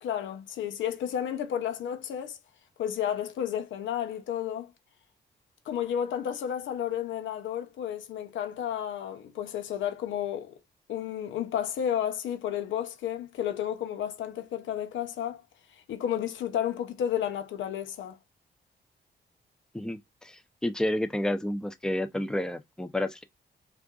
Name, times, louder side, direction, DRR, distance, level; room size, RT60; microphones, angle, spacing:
voice 1, 0.0-2.4 2.8-4.7 5.7-10.6 10.9-15.4 15.9-18.2, left 10 dB, 90° left, 0.6 m, -32 dB
voice 2, 19.7-23.2, left 1 dB, 5° left, 0.6 m, -30 dB
4.3 x 2.5 x 2.3 m
cardioid pair, 70°, 19 cm